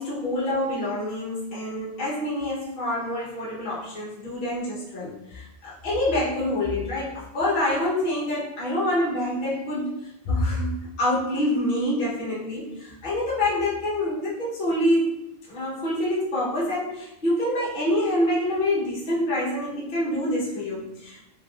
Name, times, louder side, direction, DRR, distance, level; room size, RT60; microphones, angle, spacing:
voice 1, 0.0-15.2 15.5-21.3, left 1 dB, 45° left, -7 dB, 1.0 m, -26 dB
3.3 x 3.0 x 2.3 m, 0.88 s
omnidirectional pair, 1.3 m